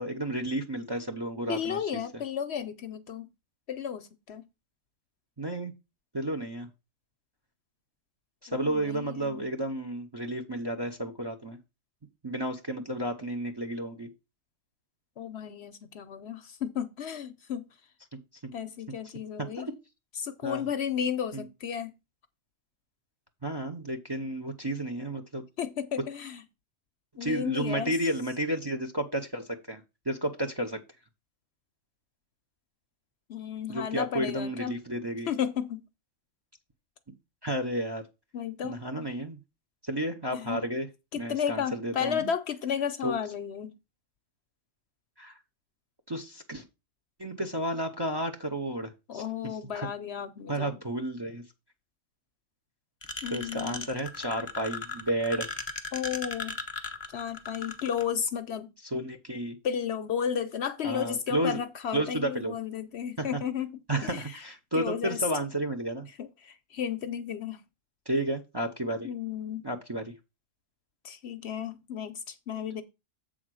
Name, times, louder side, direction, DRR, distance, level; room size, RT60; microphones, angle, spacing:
voice 1, 0.0-1.8 5.4-5.7 6.1-6.7 8.4-11.6 12.2-14.1 18.1-18.2 19.6-19.7 20.4-20.7 21.3-21.5 23.4-25.4 27.2-30.8 33.7-35.3 37.4-38.0 38.6-39.4 39.8-40.9 41.1-42.2 43.0-43.1 45.2-45.4 46.1-46.6 47.2-49.2 49.7-49.9 50.5-51.4 53.3-55.5 58.9-59.6 60.8-61.6 61.9-62.6 63.2-63.4 63.9-66.1 68.1-69.1 69.6-70.0, right 1 dB, 25° right, 0.7 m, -32 dB
voice 2, 1.5-3.3 3.7-4.4 8.5-9.5 15.2-17.7 18.5-19.7 20.1-21.9 25.6-26.4 27.2-28.0 33.3-34.8 35.3-35.8 38.3-38.8 40.3-40.6 41.1-43.7 49.1-50.8 53.2-53.8 55.9-56.6 57.1-58.7 59.6-64.4 64.7-65.3 66.2-67.6 69.0-69.7 71.0-72.8, left 8 dB, 60° left, 0.8 m, -33 dB
sound 1, 53.0-58.0, left 3 dB, 25° left, 0.7 m, -37 dB
7.7 x 3.8 x 6.2 m
omnidirectional pair, 1.3 m